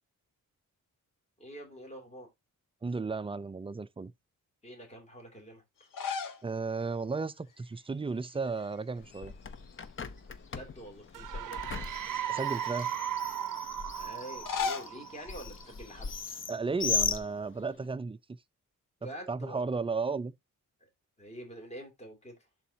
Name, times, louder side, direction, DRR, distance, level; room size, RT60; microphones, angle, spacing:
voice 1, 1.4-2.3 4.6-5.9 10.5-11.7 13.9-16.4 19.0-19.6 21.2-22.4, equal, 20° left, 2.9 m, -46 dB
voice 2, 2.8-4.1 6.4-9.3 12.3-12.9 16.5-18.2 19.3-20.3, right 4 dB, 15° right, 0.3 m, -34 dB
sound 1, 5.8-6.5 6.8-6.9 8.3-8.7 9.0-10.2 10.8-10.9 11.8-12.9 14.2-16.4, left 6 dB, 75° left, 1.3 m, -39 dB
Bird, 9.0-17.9, left 5 dB, 40° left, 0.7 m, -38 dB
sound 2, 11.1-15.7, right 11 dB, 75° right, 0.5 m, -37 dB
11.5 x 4.0 x 2.8 m
wide cardioid pair, 140°, 32 cm